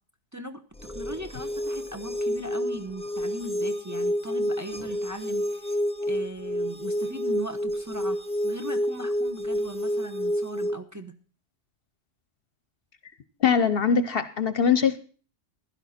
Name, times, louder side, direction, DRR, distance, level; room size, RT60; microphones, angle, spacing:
voice 1, 0.3-0.6 0.9-8.2 8.4-11.2, right 1 dB, 15° right, 5 dB, 1.0 m, -39 dB
sound 1, 0.8-10.8, equal, 5° left, 0.6 m, -29 dB
voice 2, 13.4-15.0, left 6 dB, 55° left, 12 dB, 0.9 m, -22 dB
15.5 x 12.0 x 4.3 m, 0.41 s
omnidirectional pair, 1.2 m